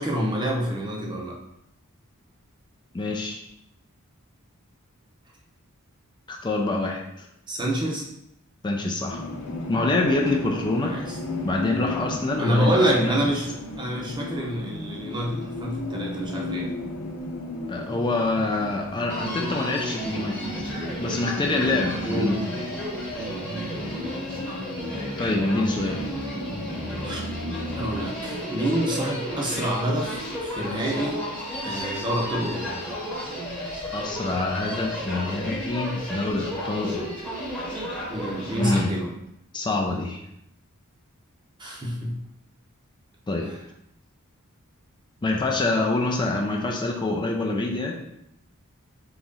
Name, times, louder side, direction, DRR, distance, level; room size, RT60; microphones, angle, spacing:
voice 1, 0.0-1.4 7.5-8.0 10.8-11.2 12.4-16.7 22.0-22.4 27.0-27.2 27.7-31.2 31.6-32.8 38.1-39.1 41.6-42.1, equal, 20° right, -1 dB, 0.8 m, -27 dB
voice 2, 2.9-3.4 6.3-7.3 8.6-9.2 9.7-11.1 11.4-13.2 17.7-20.7 21.0-22.4 23.2-23.3 25.2-26.1 33.9-37.1 38.6-39.0 39.5-40.2 43.3-43.5 45.2-47.9, left 2 dB, 20° left, 0 dB, 0.4 m, -26 dB
sound 1, 9.1-28.6, left 2 dB, 80° left, 0.7 m, -36 dB
Human voice, 19.1-38.9, equal, 5° left, 1.0 m, -33 dB
3.9 x 3.0 x 3.6 m, 0.80 s
head